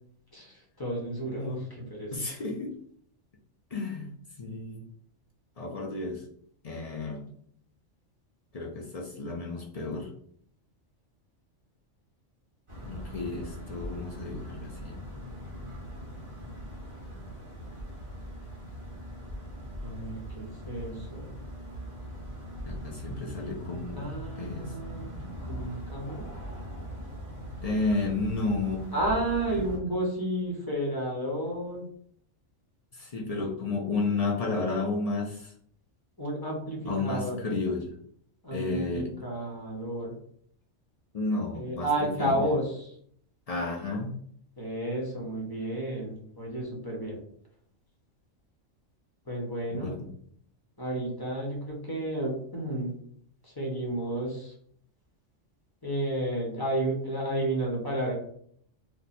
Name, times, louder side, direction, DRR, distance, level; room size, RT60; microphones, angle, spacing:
voice 1, 0.3-2.1 19.8-21.4 23.9-25.2 25.5-26.3 28.9-31.8 36.2-37.4 38.4-40.1 41.5-43.0 44.6-47.2 49.3-50.0 50.8-52.9 53.4-54.5 55.8-58.1, right 1 dB, 20° left, -2 dB, 0.8 m, -32 dB
voice 2, 2.1-2.7 3.7-4.1 4.4-4.8 5.6-6.2 6.6-7.3 8.5-10.1 12.8-15.0 22.7-24.1 24.4-24.7 27.6-28.9 29.5-29.6 33.0-35.5 36.9-37.9 38.5-39.1 41.1-41.9 42.2-42.4 43.5-44.1 49.7-50.1, left 3 dB, 55° left, -1 dB, 0.4 m, -32 dB
sound 1, 12.7-29.8, equal, 25° right, 0.9 m, -41 dB
2.8 x 2.2 x 4.1 m, 0.65 s
omnidirectional pair, 1.3 m